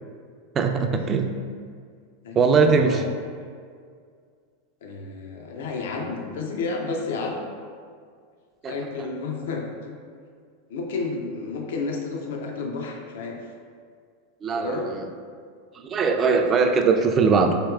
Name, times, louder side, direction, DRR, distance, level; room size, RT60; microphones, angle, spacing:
voice 1, 0.6-1.3 2.4-3.0 8.6-8.7 14.4-15.1 15.8-17.5, right 5 dB, 30° right, 5 dB, 0.3 m, -20 dB
voice 2, 2.2-3.0 4.8-7.4 8.7-9.9 10.7-13.4 14.5-14.9, left 3 dB, 75° left, 1 dB, 0.5 m, -31 dB
4.4 x 2.9 x 2.3 m, 2.1 s
hypercardioid pair, 115°, 0 cm